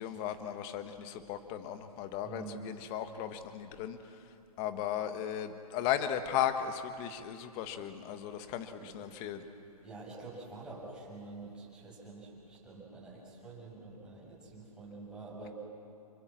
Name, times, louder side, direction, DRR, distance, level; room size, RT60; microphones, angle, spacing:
voice 1, 0.0-9.4, left 9 dB, 25° left, 8 dB, 1.5 m, -36 dB
voice 2, 2.2-2.7 8.4-9.0 9.8-15.5, right 3 dB, 5° right, -6 dB, 6.6 m, -47 dB
27.5 x 22.5 x 7.6 m, 2.9 s
hypercardioid pair, 145°, 20 cm